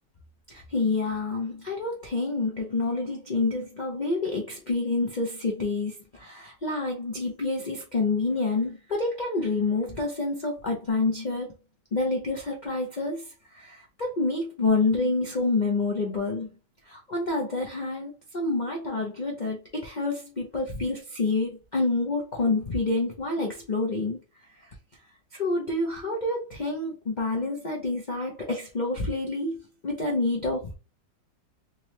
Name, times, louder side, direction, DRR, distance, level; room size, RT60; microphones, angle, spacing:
voice 1, 0.5-11.5 11.9-13.3 13.5-16.5 16.9-24.2 25.3-29.6 29.8-30.7, left 3 dB, 45° left, 0.6 m, -28 dB
3.7 x 3.0 x 3.1 m
omnidirectional pair, 1.8 m